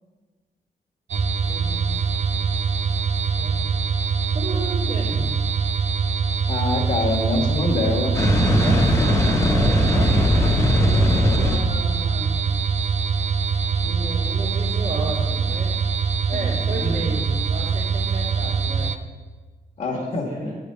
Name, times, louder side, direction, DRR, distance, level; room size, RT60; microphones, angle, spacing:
sound 1, 1.1-19.0, right 5 dB, 50° right, 0.4 m, -23 dB
voice 1, 1.5-3.8 4.3-5.3 8.5-12.5 13.8-15.8 16.3-18.9 19.9-20.6, right 2 dB, 70° right, -4 dB, 2.9 m, -34 dB
voice 2, 6.5-8.1 16.3-16.4 16.7-17.0 19.8-20.5, left 2 dB, 50° left, 0 dB, 1.6 m, -25 dB
sound 2, 8.1-11.6, left 1 dB, 20° left, 1.2 m, -19 dB
10.0 x 5.1 x 6.7 m, 1.3 s
wide cardioid pair, 140°, 15 cm